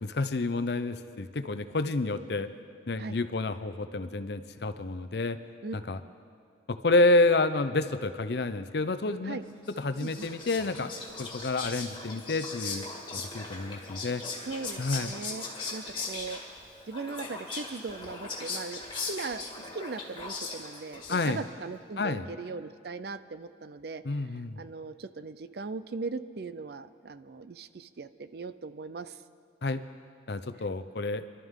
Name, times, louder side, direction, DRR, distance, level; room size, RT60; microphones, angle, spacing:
voice 1, 0.0-2.5 2.9-5.4 5.7-6.0 6.7-9.4 9.8-12.9 13.1-14.2 14.8-15.1 21.1-21.4 22.0-22.3 24.0-24.6 29.6-29.8 30.3-31.2, left 2 dB, 60° left, 10 dB, 0.6 m, -29 dB
Whispering, 9.7-21.6, left 3 dB, 25° left, 1.8 m, -39 dB
voice 2, 14.5-15.4 15.7-16.4 16.9-24.0 24.6-29.2, right 4 dB, 55° right, 13 dB, 0.5 m, -39 dB
26.0 x 12.5 x 3.7 m, 2.2 s
head